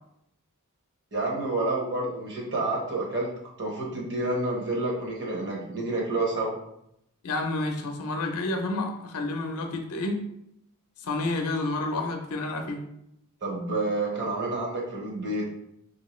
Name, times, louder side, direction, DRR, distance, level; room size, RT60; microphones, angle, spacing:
voice 1, 1.1-3.3 3.6-6.6 13.4-15.5, right 2 dB, 55° right, -2 dB, 1.0 m, -29 dB
voice 2, 7.2-10.2 11.0-12.8, left 2 dB, 75° left, 4 dB, 0.5 m, -29 dB
2.9 x 2.7 x 3.1 m, 0.77 s
head